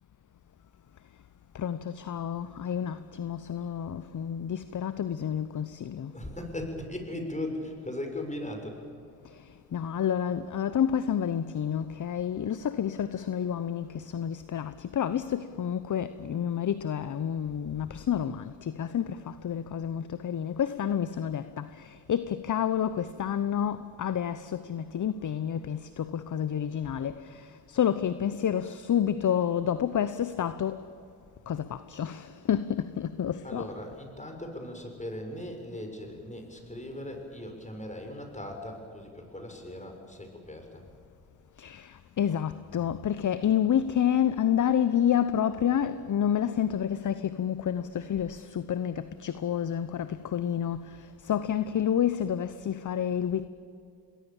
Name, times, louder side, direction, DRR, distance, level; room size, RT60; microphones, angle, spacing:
voice 1, 1.5-6.1 9.2-30.9 31.5-33.7 41.6-53.5, left 9 dB, 40° left, 1.0 m, -29 dB
voice 2, 6.1-8.8 33.4-40.8, left 1 dB, 15° left, 6.6 m, -38 dB
27.5 x 20.5 x 7.4 m
hypercardioid pair, 60°, 49 cm